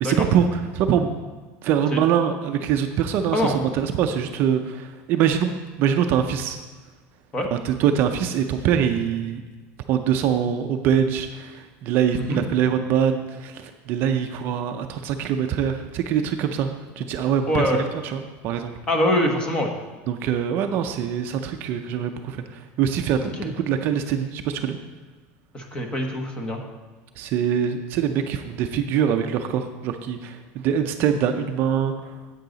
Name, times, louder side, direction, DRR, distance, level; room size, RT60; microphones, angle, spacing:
voice 1, 0.0-1.2 1.6-5.5 5.8-6.6 7.5-9.4 9.9-16.7 17.0-17.7 18.0-18.7 20.1-24.8 27.2-32.2, right 8 dB, 40° right, 6 dB, 0.5 m, -23 dB
voice 2, 17.5-17.8 18.9-19.7 23.4-23.5 25.5-26.6, left 1 dB, 15° left, 3 dB, 1.1 m, -23 dB
10.5 x 8.2 x 3.9 m, 1.4 s
cardioid pair, 175°, 6 cm